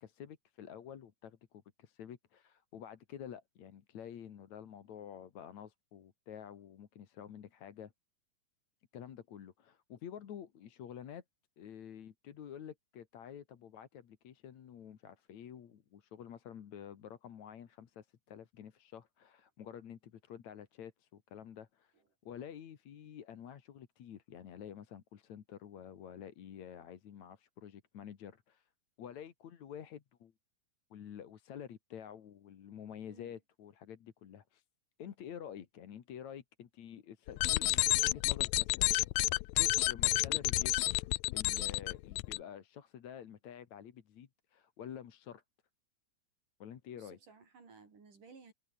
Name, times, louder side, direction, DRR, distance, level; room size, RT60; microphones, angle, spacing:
voice 1, 0.0-7.9 8.9-11.2 11.6-21.9 22.2-28.7 29.0-30.3 30.9-34.6 35.0-38.9 39.6-45.4 46.6-47.2, left 9 dB, 60° left, 3.0 m, -49 dB
voice 2, 33.1-33.4 47.0-48.5, right 4 dB, 70° right, 6.8 m, -57 dB
sound 1, 37.3-42.4, left 21 dB, 85° left, 1.7 m, -30 dB
omnidirectional pair, 3.9 m